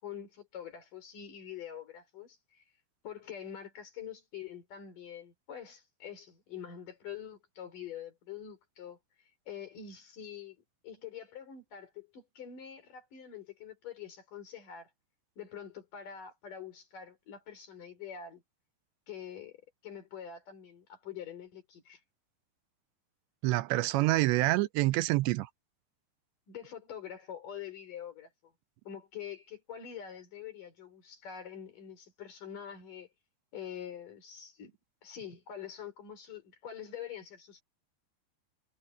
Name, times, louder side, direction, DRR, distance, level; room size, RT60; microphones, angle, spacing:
voice 1, 0.0-2.6 3.0-9.0 9.5-10.6 10.8-14.9 15.4-18.4 19.1-22.0 26.5-28.5 28.9-33.1 33.5-34.8 35.0-37.6, left 8 dB, 50° left, 5.6 m, -45 dB
voice 2, 23.4-25.5, right 19 dB, 85° right, 3.0 m, -27 dB
omnidirectional pair, 5.0 m